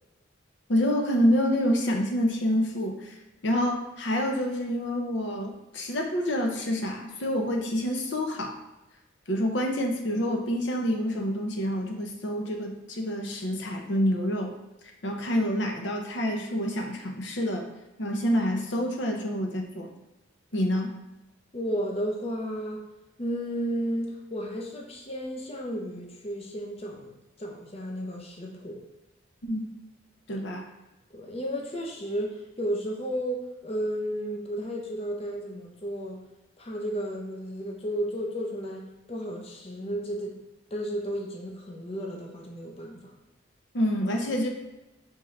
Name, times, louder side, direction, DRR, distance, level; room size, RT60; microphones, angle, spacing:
voice 1, 0.7-3.1 3.4-8.5 9.3-14.5 15.0-17.7 18.0-19.9 20.5-20.9 29.4-29.7 30.3-30.7 43.7-44.5, equal, 65° left, 3 dB, 0.7 m, -27 dB
voice 2, 21.5-22.9 23.2-28.8 31.1-36.2 36.6-40.4 40.7-43.1, equal, 30° left, 0 dB, 0.6 m, -33 dB
4.5 x 3.5 x 3.2 m, 1.0 s
head